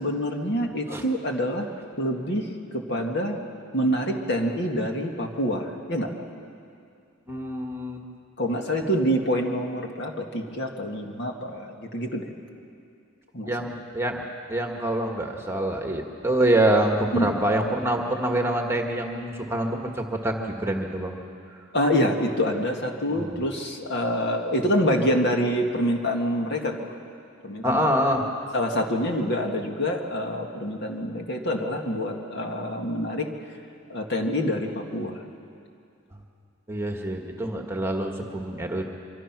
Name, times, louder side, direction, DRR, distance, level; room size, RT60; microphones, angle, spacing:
voice 1, 0.0-1.7 2.0-3.4 3.7-6.1 8.4-12.3 13.3-13.5 17.1-17.5 21.7-26.9 27.4-27.9 28.5-33.3 33.9-35.2, equal, 55° left, 2 dB, 2.0 m, -26 dB
voice 2, 7.3-8.0 8.8-8.9 13.4-21.2 23.1-23.4 27.6-28.2 36.7-38.9, right 1 dB, 10° right, 2 dB, 1.6 m, -26 dB
25.0 x 24.5 x 6.1 m, 2.4 s
head